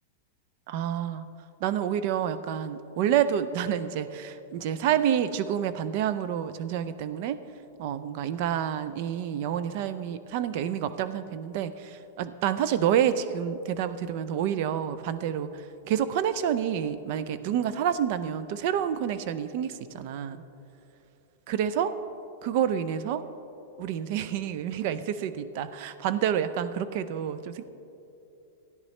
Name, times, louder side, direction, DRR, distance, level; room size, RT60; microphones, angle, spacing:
voice 1, 0.7-1.3 1.6-7.4 7.8-20.4 21.5-22.0 22.4-23.2 23.8-27.6, right 9 dB, 45° right, 13 dB, 0.5 m, -28 dB
16.0 x 10.5 x 3.2 m, 2.9 s
supercardioid pair, 155°, 0 cm